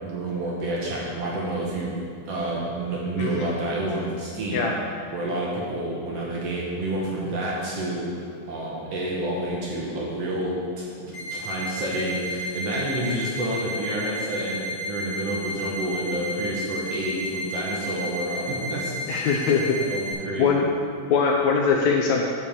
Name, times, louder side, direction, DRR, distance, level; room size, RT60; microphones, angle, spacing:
voice 1, 0.0-2.0 2.3-4.6 5.1-19.1 19.8-20.6, right 1 dB, 60° right, -4 dB, 1.9 m, -29 dB
sound 1, 11.1-20.1, equal, 45° left, 2.9 m, -33 dB
voice 2, 19.1-19.9 20.4-22.2, left 5 dB, 80° left, 1 dB, 1.7 m, -22 dB
7.1 x 5.4 x 6.6 m, 2.2 s
omnidirectional pair, 3.7 m